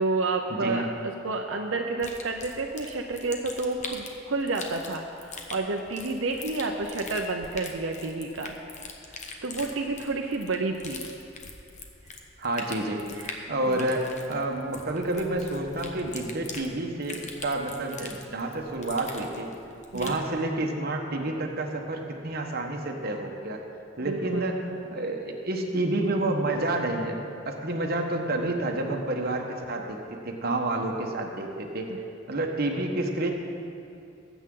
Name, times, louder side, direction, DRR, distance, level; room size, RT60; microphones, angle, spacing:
voice 1, 0.0-8.6 9.4-11.0 13.2-13.3 13.7-13.8 19.9-20.2 24.0-24.5, right 3 dB, 85° right, 2 dB, 0.7 m, -30 dB
sound 1, 2.0-20.2, left 4 dB, 40° left, 1.1 m, -42 dB
voice 2, 12.4-13.1 13.5-19.5 19.9-23.6 24.0-27.2 27.4-31.9 32.3-33.3, right 2 dB, 55° right, 2 dB, 1.2 m, -29 dB
19.5 x 8.2 x 3.8 m, 2.6 s
head